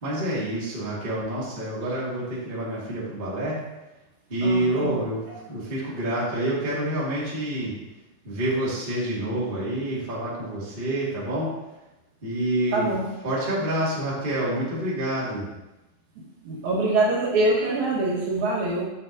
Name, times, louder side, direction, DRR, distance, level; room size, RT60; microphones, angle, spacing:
voice 1, 0.0-3.6 4.3-7.7 8.2-11.5 12.2-12.9 13.2-15.5, right 1 dB, 20° right, -7 dB, 1.5 m, -27 dB
voice 2, 4.4-4.9 12.7-13.1 16.4-18.8, right 2 dB, 65° right, -4 dB, 2.6 m, -24 dB
8.2 x 7.5 x 2.6 m, 0.99 s
omnidirectional pair, 3.9 m